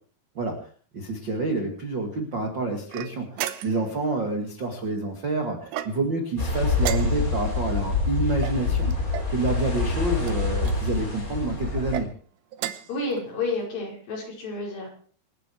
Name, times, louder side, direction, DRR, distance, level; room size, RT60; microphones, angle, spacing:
voice 1, 0.9-3.3 3.6-8.9 9.3-12.1, right 3 dB, 40° right, 3 dB, 1.8 m, -28 dB
sound 1, 2.9-4.0 5.7-6.3 6.8-7.5 8.4-9.4 10.2-10.8 11.7-12.1 12.5-13.0, right 11 dB, 70° right, 2.6 m, -34 dB
sound 2, 6.4-12.0, left 4 dB, 20° left, 4.1 m, -26 dB
voice 2, 12.9-14.9, left 3 dB, 55° left, -1 dB, 6.7 m, -30 dB
27.0 x 10.0 x 4.6 m, 0.44 s
omnidirectional pair, 4.9 m